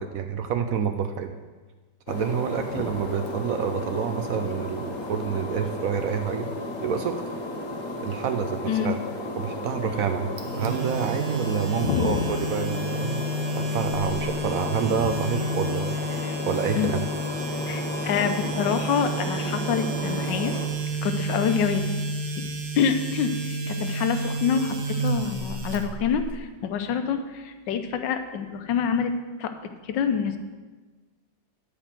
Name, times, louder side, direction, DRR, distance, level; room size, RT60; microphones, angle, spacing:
voice 1, 0.0-1.3 2.1-6.5 6.8-7.2 8.0-9.0 9.4-10.3 10.6-13.2 13.6-16.0 16.4-17.1, right 7 dB, 65° right, 7 dB, 0.9 m, -28 dB
sound 1, 2.1-20.7, left 2 dB, 55° left, 1.5 m, -34 dB
sound 2, 10.4-26.3, right 2 dB, 45° right, 1.0 m, -30 dB
voice 2, 11.8-12.3 16.2-16.3 16.8-16.9 17.7-20.5 21.0-21.8 22.4-22.5 22.8-29.1 29.4-29.5 29.8-30.4, left 7 dB, 85° left, 8 dB, 1.4 m, -26 dB
10.0 x 5.0 x 7.3 m, 1.3 s
omnidirectional pair, 1.9 m